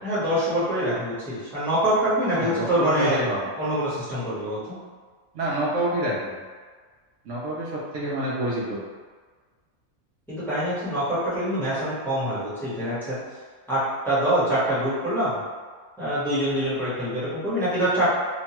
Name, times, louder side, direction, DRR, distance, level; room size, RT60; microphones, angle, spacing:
voice 1, 0.0-3.3 3.6-4.8 10.3-13.2 13.7-13.8 14.0-15.4 16.0-18.1, equal, ahead, -12 dB, 0.9 m, -25 dB
voice 2, 2.4-3.4 5.3-6.3 7.3-8.8, right 1 dB, 70° right, -7 dB, 0.9 m, -27 dB
2.9 x 2.2 x 2.9 m, 1.5 s
omnidirectional pair, 1.4 m